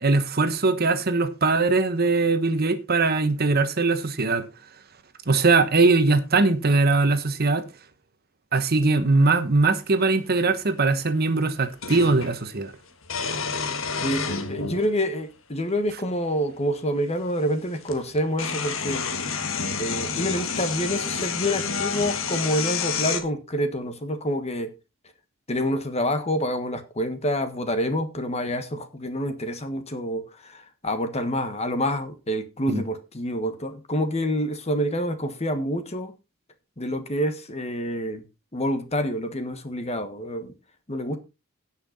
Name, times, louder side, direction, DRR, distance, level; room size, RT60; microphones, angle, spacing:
voice 1, 0.0-4.5 5.3-7.6 8.5-12.7 32.7-32.8, right 3 dB, 50° right, 1.2 m, -21 dB
sound 1, 10.1-10.2 11.8-12.4 13.0-14.9 15.8-15.9 17.4-17.5 17.8-23.2, left 5 dB, 75° left, 1.6 m, -29 dB
voice 2, 14.0-19.0 19.8-24.7 25.5-36.1 36.8-38.2 38.5-40.5 40.9-41.2, equal, 30° left, 1.5 m, -27 dB
17.0 x 5.8 x 4.1 m
head